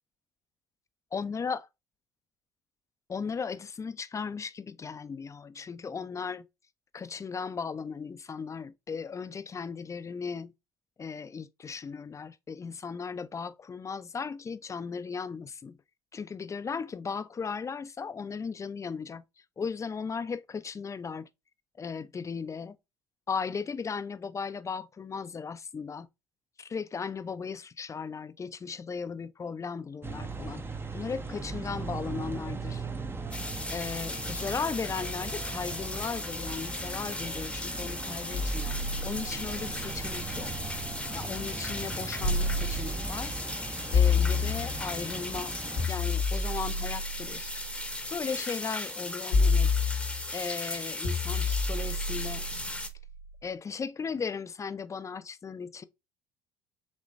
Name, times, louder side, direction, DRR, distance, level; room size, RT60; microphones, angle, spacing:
voice 1, 1.1-1.7 3.1-6.4 6.9-10.5 11.0-15.8 16.1-19.2 19.6-21.3 21.8-22.8 23.3-26.1 26.6-30.6 30.9-32.9 33.7-40.5 41.1-43.4 43.9-45.5 45.9-47.6 48.1-49.7 50.3-52.4 53.4-55.8, left 5 dB, 25° left, 0.5 m, -36 dB
sound 1, 30.0-45.9, right 3 dB, 20° right, 0.7 m, -39 dB
sound 2, 33.3-52.9, left 2 dB, 10° left, 0.9 m, -37 dB
sound 3, 38.3-41.1 42.2-43.3 43.9-45.0 45.8-48.0 49.3-50.4 51.0-53.2, left 4 dB, 80° left, 1.4 m, -29 dB
5.3 x 3.1 x 2.5 m
hypercardioid pair, 60°, 12 cm